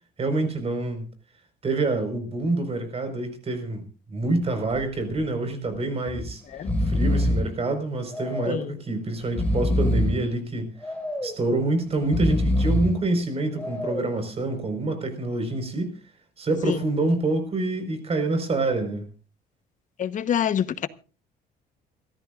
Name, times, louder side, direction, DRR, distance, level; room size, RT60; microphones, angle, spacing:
voice 1, 0.2-1.1 1.6-3.8 4.1-6.4 6.8-10.7 11.2-15.9 16.4-19.1, right 2 dB, 35° right, 4.8 m, -26 dB
Breathing, 4.4-4.8 5.1-5.2 6.1-6.3 6.5-7.5 8.1-8.7 9.2-10.2 10.8-11.4 12.0-13.0 13.6-14.2, left 1 dB, 10° left, 5.5 m, -25 dB
voice 2, 20.0-20.9, left 9 dB, 50° left, 1.1 m, -25 dB
27.5 x 13.5 x 2.5 m
cardioid pair, 110°, 17 cm